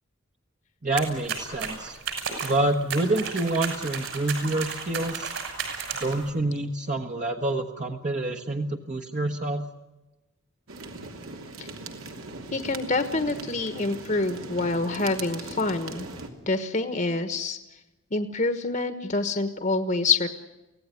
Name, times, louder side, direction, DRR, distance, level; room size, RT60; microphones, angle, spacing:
voice 1, 0.8-2.0 2.4-5.3 6.0-9.6, right 2 dB, 40° right, 2 dB, 1.3 m, -27 dB
sound 1, 1.0-6.3, right 5 dB, 65° right, 6.4 m, -34 dB
sound 2, 10.7-16.3, right 2 dB, 80° right, 3.1 m, -39 dB
voice 2, 12.5-16.1 16.5-17.6 18.1-20.4, left 3 dB, 40° left, 9 dB, 1.3 m, -26 dB
24.5 x 17.0 x 9.6 m, 1.0 s
head